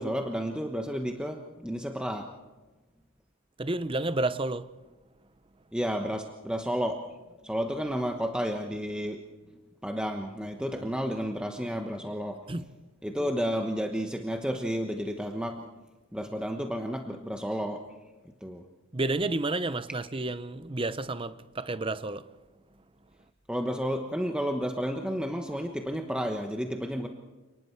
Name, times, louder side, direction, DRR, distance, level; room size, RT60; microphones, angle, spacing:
voice 1, 0.0-2.3 5.7-7.0 7.4-9.2 9.8-12.4 13.0-15.6 16.1-17.8 18.4-18.6 23.5-27.1, equal, 5° right, 1.1 m, -31 dB
voice 2, 3.6-4.7 10.8-10.9 12.5-12.7 18.9-22.2, right 2 dB, 25° right, 0.7 m, -30 dB
29.0 x 19.5 x 4.7 m
head